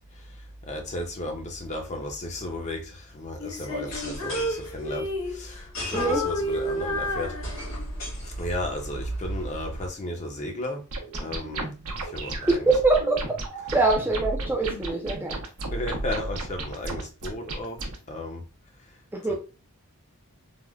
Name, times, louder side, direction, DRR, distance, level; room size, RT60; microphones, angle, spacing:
voice 1, 0.7-2.8 3.1-5.1 5.3-7.3 8.4-10.8 11.2-11.7 12.1-12.5 15.7-17.8 18.1-18.4, left 1 dB, 30° left, 0.6 m, -34 dB
Female singing, 3.4-5.6 5.9-8.0, left 1 dB, 85° left, 0.9 m, -30 dB
sound 1, 3.9-9.9, right 1 dB, 60° left, 1.5 m, -36 dB
voice 2, 5.9-6.2 12.5-13.2 13.7-15.4 19.1-19.3, right 3 dB, 10° right, 0.3 m, -23 dB
sound 2, 10.9-18.0, right 2 dB, 80° right, 0.7 m, -34 dB
3.5 x 2.1 x 2.3 m
head